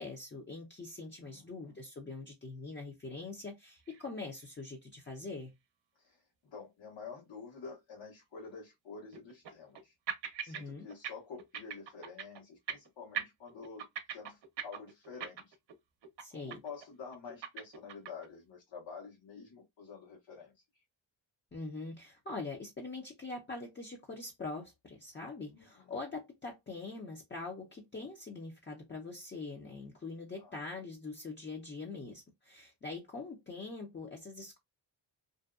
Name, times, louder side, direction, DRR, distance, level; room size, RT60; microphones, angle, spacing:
voice 1, 0.0-5.5 10.5-10.9 16.2-16.6 21.5-34.6, left 3 dB, 25° left, 0.6 m, -43 dB
voice 2, 1.2-1.8 6.0-9.9 10.4-13.9 14.1-15.5 16.3-20.5 25.5-26.0 30.4-30.6, left 5 dB, 70° left, 1.2 m, -49 dB
sound 1, 3.9-4.1 4.4-4.5 5.1-5.2 8.4-8.5 9.1-9.8 10.1-10.6 10.9-11.1 11.4-12.4 12.7-12.9 13.1-15.7 16.0-16.2 16.5-16.8 17.1-18.3, right 8 dB, 65° right, 0.7 m, -40 dB
2.6 x 2.2 x 2.3 m
cardioid pair, 85°, 45 cm